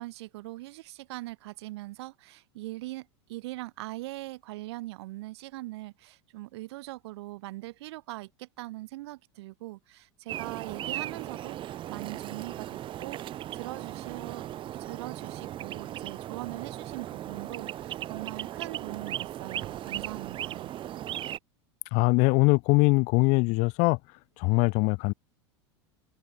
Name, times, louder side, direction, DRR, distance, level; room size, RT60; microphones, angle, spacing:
voice 1, 0.0-14.4 14.8-20.7, right 19 dB, 65° right, 3.4 m, -41 dB
sound 1, 10.3-21.4, right 12 dB, 35° right, 0.8 m, -37 dB
voice 2, 21.9-24.0 24.4-25.1, left 28 dB, 55° left, 1.3 m, -22 dB
open air
hypercardioid pair, 90°, 15 cm